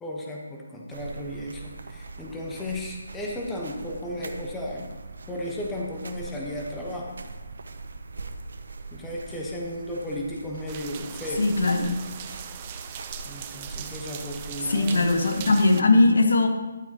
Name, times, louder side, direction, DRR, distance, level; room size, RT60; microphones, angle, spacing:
voice 1, 0.0-4.9 5.3-7.2 8.9-11.5 13.2-15.5, left 1 dB, 10° left, -2 dB, 1.1 m, -34 dB
sound 1, 0.9-15.7, right 3 dB, 75° right, 0.7 m, -41 dB
sound 2, 10.7-15.8, right 9 dB, 25° right, 0.5 m, -40 dB
voice 2, 11.4-12.0 14.6-16.5, left 2 dB, 80° left, 6 dB, 1.1 m, -20 dB
11.5 x 8.5 x 2.9 m, 1.2 s
hypercardioid pair, 165°, 0 cm